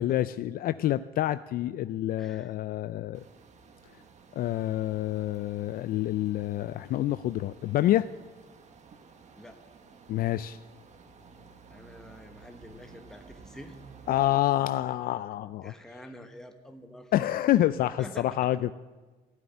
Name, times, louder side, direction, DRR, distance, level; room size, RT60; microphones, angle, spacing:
voice 1, 0.0-3.2 4.4-8.1 10.1-10.6 14.1-15.7 17.1-18.7, left 13 dB, 60° left, 14 dB, 0.4 m, -27 dB
voice 2, 1.9-2.5 9.4-9.6 11.7-13.8 15.6-17.7 18.0-18.5, equal, 5° left, 5 dB, 1.2 m, -47 dB
sound 1, 3.1-14.3, right 5 dB, 45° right, 1.5 m, -53 dB
14.0 x 7.9 x 10.0 m, 1.3 s
cardioid pair, 110°, 17 cm